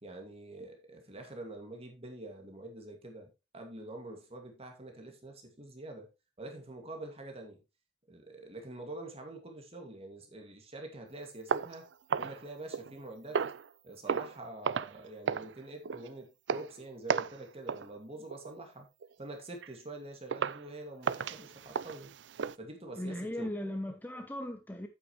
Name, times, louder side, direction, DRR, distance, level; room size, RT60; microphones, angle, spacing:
voice 1, 0.0-6.1 6.4-7.6 8.1-11.9 12.2-13.4 13.8-18.9 19.2-22.1 22.6-23.5, right 2 dB, 35° right, 2.1 m, -46 dB
sound 1, 11.5-13.0 13.3-13.7 14.1-14.4 14.6-15.0 15.3-15.5 15.8-16.1 16.5-16.7 17.1-17.4 17.7-17.9 18.3-18.5 19.0-19.1 19.6-19.7 20.3-20.6 21.0-22.6, right 6 dB, 80° right, 0.5 m, -34 dB
voice 2, 23.0-24.9, left 1 dB, 10° left, 0.9 m, -37 dB
9.2 x 8.7 x 3.1 m
head